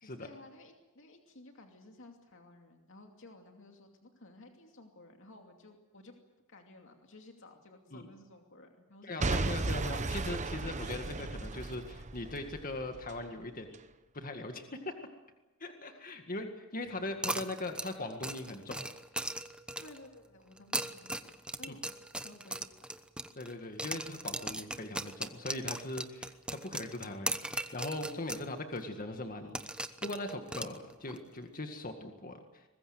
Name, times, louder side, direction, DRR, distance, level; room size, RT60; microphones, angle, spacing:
voice 1, 0.0-6.1 6.5-9.6 15.8-16.0 19.8-21.9 22.2-22.8, left 2 dB, 65° left, 3 dB, 2.7 m, -55 dB
voice 2, 9.0-13.7 14.1-14.9 15.6-18.8 23.4-29.6 30.0-32.6, left 2 dB, 40° left, 5 dB, 1.9 m, -40 dB
Boom / Shatter / Crushing, 9.2-13.2 13.7-13.8, right 3 dB, 35° right, 1.0 m, -35 dB
sound 1, 17.2-20.1 20.6-23.5 23.8-28.5 28.8-28.9 29.5-31.2, right 1 dB, 5° right, 0.9 m, -38 dB
24.0 x 21.0 x 7.8 m, 1.1 s
head